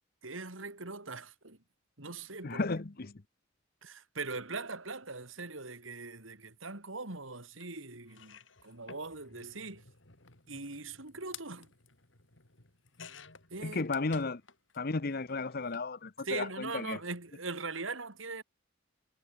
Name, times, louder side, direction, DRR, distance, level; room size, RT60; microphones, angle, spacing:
voice 1, 0.2-1.6 2.0-2.6 3.8-9.9 10.5-11.7 13.5-13.9 16.2-18.4, right 3 dB, 85° right, 3.7 m, -41 dB
voice 2, 2.4-3.2 13.6-14.4 14.8-17.0, left 3 dB, 50° left, 0.9 m, -34 dB
sound 1, 7.6-7.7 8.1-14.8 15.1-15.9 16.9-17.1 17.3-17.4, left 6 dB, 70° left, 3.8 m, -54 dB
head